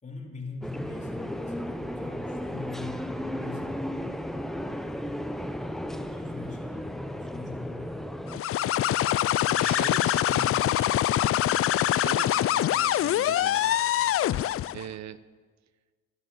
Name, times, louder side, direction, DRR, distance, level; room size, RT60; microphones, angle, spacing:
voice 1, 0.0-3.8 4.6-5.2 6.1-8.0 9.4-9.9 10.3-10.6, left 3 dB, 25° left, -1 dB, 3.4 m, -42 dB
sound 1, 0.6-8.4, equal, ahead, 0.8 m, -34 dB
sound 2, 8.3-14.8, left 12 dB, 50° left, 0.4 m, -24 dB
voice 2, 9.6-10.9 11.9-13.7 14.7-15.2, right 11 dB, 65° right, 15 dB, 0.7 m, -41 dB
13.0 x 9.5 x 8.7 m, 1.5 s
cardioid pair, 90°, 30 cm